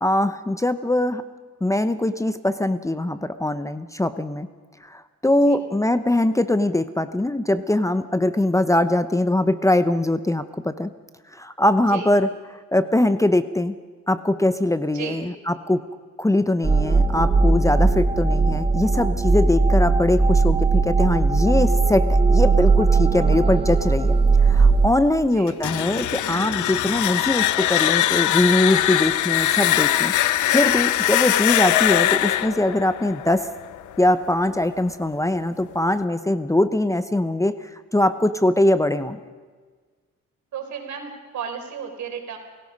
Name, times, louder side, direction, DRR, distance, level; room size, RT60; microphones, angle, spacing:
voice 1, 0.0-1.2 1.6-4.5 4.8-10.9 11.3-12.3 12.7-13.7 14.1-15.8 16.2-24.1 24.4-30.1 30.5-33.5 34.0-39.2, left 1 dB, 10° left, 12 dB, 0.9 m, -22 dB
voice 2, 14.9-15.2 25.2-25.6 40.5-42.4, right 7 dB, 70° right, 4 dB, 4.7 m, -34 dB
sound 1, 16.6-24.9, right 4 dB, 20° right, 1.2 m, -18 dB
sound 2, 25.5-34.3, left 13 dB, 75° left, 0.8 m, -21 dB
29.0 x 17.0 x 5.4 m, 1.5 s
cardioid pair, 90°, 30 cm